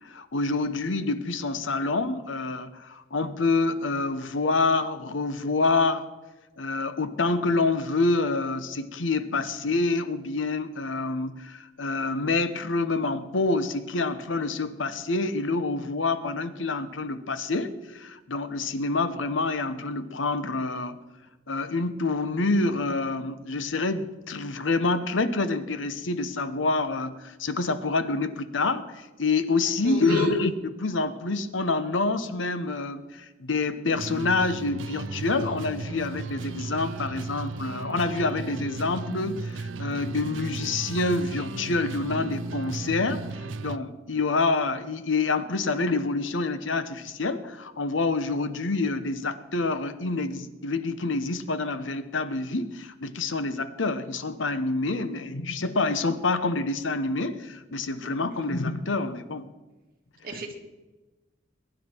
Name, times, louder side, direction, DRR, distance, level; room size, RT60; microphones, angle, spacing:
voice 1, 0.0-6.0 6.6-21.0 21.5-59.5, left 3 dB, 80° left, 12 dB, 1.0 m, -27 dB
voice 2, 29.8-30.4 60.2-60.6, right 3 dB, 50° right, 1 dB, 2.2 m, -34 dB
sound 1, 33.9-43.8, right 3 dB, 80° right, 0.6 m, -35 dB
22.0 x 10.5 x 4.5 m, 1.2 s
head